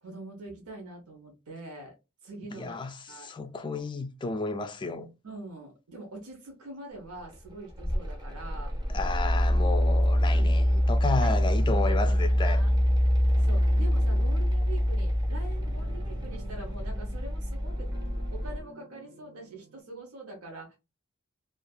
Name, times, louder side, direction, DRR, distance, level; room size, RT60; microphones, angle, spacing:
voice 1, 0.0-1.9 2.2-2.8 3.1-3.3 5.2-8.7 10.3-10.8 11.2-11.5 11.9-12.0 12.4-12.7 13.4-17.9 18.3-20.8, right 2 dB, 85° right, 0.9 m, -44 dB
voice 2, 2.5-5.1 8.9-12.6, left 3 dB, 20° left, 0.3 m, -32 dB
Mechanical fan, 7.3-18.6, equal, 20° right, 0.8 m, -25 dB
sound 1, 11.3-19.8, right 2 dB, 60° right, 0.5 m, -50 dB
2.6 x 2.4 x 2.3 m
head